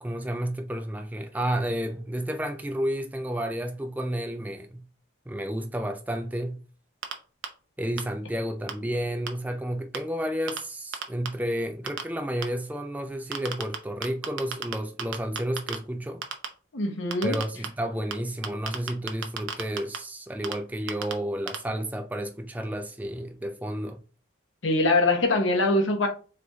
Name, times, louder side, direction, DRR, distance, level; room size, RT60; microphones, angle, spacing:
voice 1, 0.0-4.8 5.3-6.6 7.8-16.2 17.2-24.0, equal, 10° right, 0.3 m, -31 dB
sound 1, 7.0-7.1 7.4-7.5 8.0-8.1 8.7-8.8 9.3-9.4 9.9-10.0 10.5-10.6 10.9-11.3 11.9-12.0 12.4-12.5 13.3-13.8 14.0-14.7 15.0-15.8 16.2-16.5 17.1-17.7 18.1-18.2 18.4-20.0 20.4-20.5 20.9-21.1 21.5-21.6, right 7 dB, 80° right, 0.7 m, -31 dB
voice 2, 16.7-17.3 24.6-26.1, left 2 dB, 75° left, 1.0 m, -23 dB
4.0 x 3.3 x 3.5 m
head